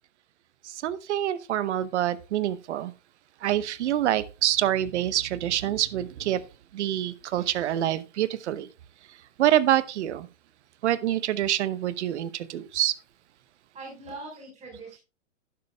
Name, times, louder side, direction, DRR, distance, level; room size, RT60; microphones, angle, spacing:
voice 1, 0.6-2.9 3.4-6.4 6.7-8.7 9.4-10.3 10.8-12.9, right 12 dB, 65° right, 0.9 m, -26 dB
voice 2, 13.7-15.0, right 3 dB, 20° right, 4.8 m, -41 dB
11.5 x 10.5 x 2.3 m
hypercardioid pair, 125°, 37 cm